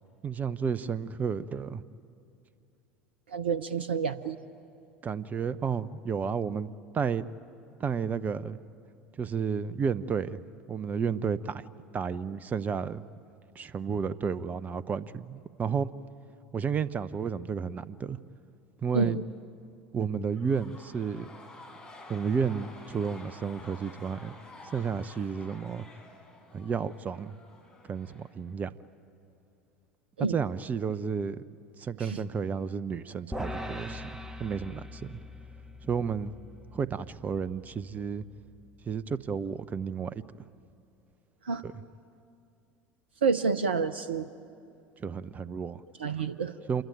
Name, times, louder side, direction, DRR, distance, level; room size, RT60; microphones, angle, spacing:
voice 1, 0.2-1.8 5.0-7.2 7.8-8.6 9.2-10.4 10.7-11.6 11.9-13.0 13.6-15.9 16.5-18.2 18.8-19.2 19.9-21.3 22.1-24.3 24.7-25.9 26.5-27.4 27.9-28.7 30.3-31.4 31.8-34.0 34.4-35.2 35.8-36.3 36.7-38.2 38.9-40.1 41.6-41.8 45.0-45.8 46.7-46.8, right 6 dB, 30° right, 17 dB, 0.8 m, -32 dB
voice 2, 3.3-4.4 18.9-19.2 30.2-30.4 32.0-32.2 41.5-41.6 43.2-44.3 46.0-46.5, right 5 dB, 75° right, 15 dB, 0.7 m, -28 dB
sound 1, 20.3-28.8, left 2 dB, 10° left, 4.5 m, -51 dB
sound 2, 33.3-39.7, left 1 dB, 10° right, 1.8 m, -42 dB
27.0 x 22.0 x 9.3 m, 2.5 s
figure-of-eight pair, 70°, 6 cm